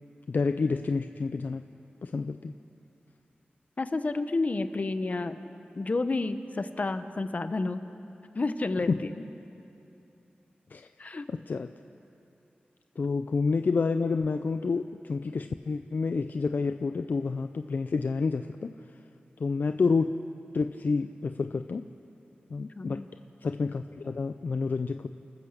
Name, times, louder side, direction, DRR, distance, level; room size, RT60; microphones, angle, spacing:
voice 1, 0.3-1.6 2.0-2.5 8.9-9.0 10.7-10.9 11.3-11.7 13.0-18.7 19.4-20.1 20.5-21.8 22.5-23.0 23.4-25.1, left 4 dB, 60° left, 9 dB, 0.5 m, -29 dB
voice 2, 3.8-5.4 5.7-7.8 8.3-9.2 11.0-11.3 22.8-23.1, left 3 dB, 45° left, 10 dB, 1.0 m, -30 dB
29.5 x 14.0 x 6.7 m, 2.8 s
wide cardioid pair, 85°, 3 cm